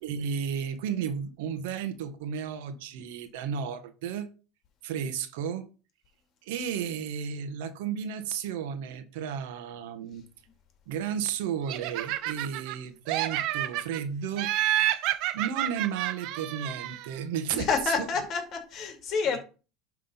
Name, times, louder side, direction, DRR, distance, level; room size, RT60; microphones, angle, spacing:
voice 1, 0.0-4.3 4.8-5.7 6.4-10.2 10.9-14.5 15.3-17.7 18.0-18.1 19.2-19.4, right 7 dB, 80° right, 1.4 m, -33 dB
Laughter, 11.7-12.8 13.1-14.0 14.4-17.1, right 13 dB, 60° right, 0.9 m, -29 dB
voice 2, 17.5-19.4, left 5 dB, 40° left, 2.7 m, -28 dB
11.0 x 3.7 x 5.7 m
supercardioid pair, 125°, 0 cm